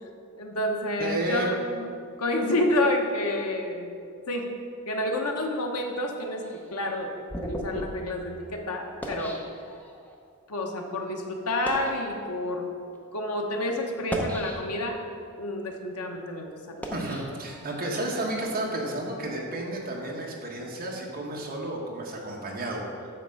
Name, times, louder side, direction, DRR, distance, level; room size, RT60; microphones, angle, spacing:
voice 1, 0.4-4.0 4.3-4.5 4.8-6.4 6.7-7.1 7.4-9.4 10.5-12.7 13.1-15.0 15.4-17.0, left 1 dB, 80° left, 2 dB, 1.0 m, -29 dB
voice 2, 1.0-1.5 16.9-23.1, right 1 dB, 40° right, -1 dB, 1.2 m, -32 dB
sound 1, 6.4-10.1 10.8-11.0 11.5-12.0 12.8-13.0 13.9-15.0 15.5-18.0, equal, 5° left, 0.7 m, -37 dB
9.0 x 3.6 x 6.4 m, 2.4 s
head